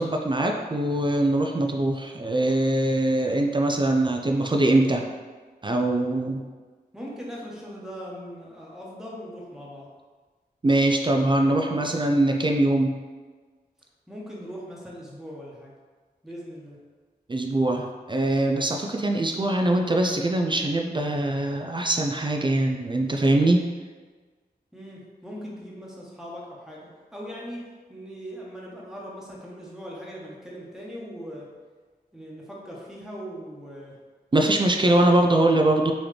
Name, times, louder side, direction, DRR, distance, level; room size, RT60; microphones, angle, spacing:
voice 1, 0.0-5.1 5.6-6.4 10.6-13.0 17.3-23.6 34.3-35.9, right 1 dB, 30° right, 2 dB, 0.4 m, -22 dB
voice 2, 6.9-9.9 14.1-15.7 16.2-16.8 24.7-27.6 27.9-31.5 32.1-34.0, equal, 5° right, -5 dB, 1.1 m, -40 dB
3.9 x 3.0 x 3.2 m, 1.4 s
cardioid pair, 45°, 17 cm